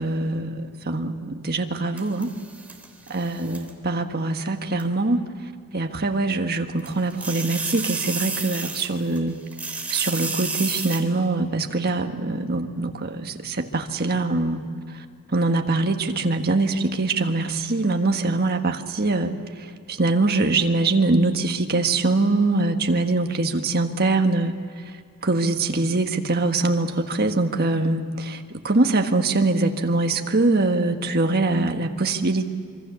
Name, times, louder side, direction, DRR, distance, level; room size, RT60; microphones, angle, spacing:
voice 1, 0.0-2.3 3.1-5.2 5.7-9.4 9.9-14.6 14.9-25.0 25.2-32.5, right 2 dB, 45° right, 5 dB, 1.6 m, -23 dB
sound 1, 2.0-3.7 4.8-4.9 6.8-9.2 9.5-11.0, right 3 dB, 5° right, 2.9 m, -31 dB
26.5 x 24.0 x 7.1 m, 2.3 s
head